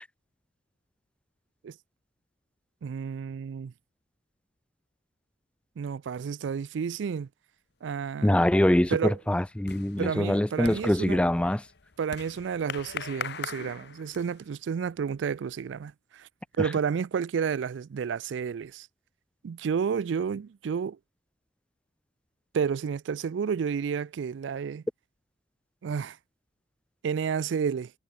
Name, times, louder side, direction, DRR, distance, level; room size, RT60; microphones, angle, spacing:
voice 1, 2.8-3.7 5.8-7.3 7.8-8.4 8.9-9.2 10.0-11.2 12.0-16.3 16.6-18.9 19.4-21.0 22.5-24.8 25.8-26.2 27.0-27.9, right 6 dB, 75° right, 0.4 m, -31 dB
sound 1, 8.0-8.4 8.7-14.5, left 6 dB, 60° left, 1.0 m, -41 dB
voice 2, 8.2-11.6 16.6-16.7, left 1 dB, 5° left, 0.3 m, -24 dB
head